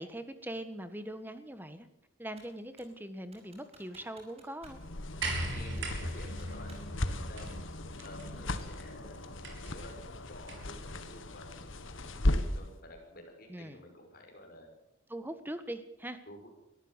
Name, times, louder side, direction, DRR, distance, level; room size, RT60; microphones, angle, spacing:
voice 1, 0.0-1.9 2.2-4.8 13.5-13.8 15.1-16.2, right 1 dB, 10° right, 10 dB, 1.4 m, -41 dB
Computer keyboard, 2.4-3.0 3.3-4.8 5.1-5.2 5.8-6.9 7.3-8.8, right 2 dB, 30° right, 5.4 m, -59 dB
sound 1, 4.6-12.7, left 1 dB, 75° left, 1.7 m, -36 dB
sound 2, 5.2-10.8 11.9-12.0, right 1 dB, 65° right, 5.5 m, -40 dB
voice 2, 5.5-7.5 8.0-9.2 9.6-14.7 16.3-16.5, left 1 dB, 45° left, 3 dB, 5.8 m, -51 dB
23.0 x 14.0 x 8.2 m, 0.88 s
head